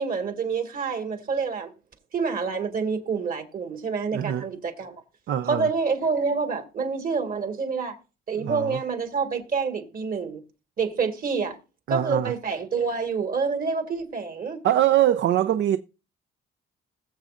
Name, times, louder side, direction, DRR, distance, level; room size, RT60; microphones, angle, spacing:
voice 1, 0.0-1.7 2.1-5.0 5.5-8.0 8.3-10.4 10.8-11.6 11.9-14.6, right 5 dB, 45° right, 2.1 m, -27 dB
voice 2, 4.1-4.5 5.3-5.7 8.4-8.8 11.9-12.3 14.6-15.8, right 12 dB, 65° right, 0.5 m, -23 dB
20.5 x 7.3 x 2.5 m
cardioid pair, 90°, 20 cm